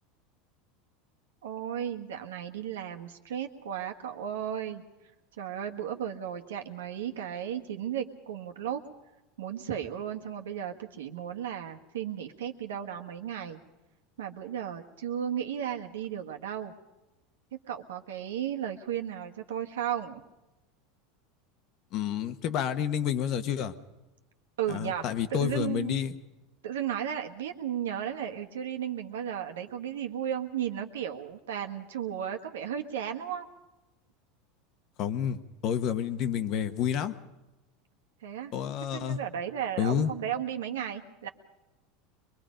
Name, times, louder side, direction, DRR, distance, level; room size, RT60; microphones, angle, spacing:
voice 1, 1.4-4.8 5.4-8.8 9.4-13.6 14.2-16.7 17.5-20.2 24.6-26.0 26.6-33.5 38.2-38.5 38.9-41.3, right 9 dB, 90° right, 4 dB, 1.4 m, -34 dB
voice 2, 21.9-23.7 24.7-26.1 35.0-37.1 38.5-39.2 39.8-40.1, left 9 dB, 55° left, 10 dB, 1.2 m, -29 dB
23.0 x 22.0 x 5.2 m, 1.0 s
hypercardioid pair, 105°, 0 cm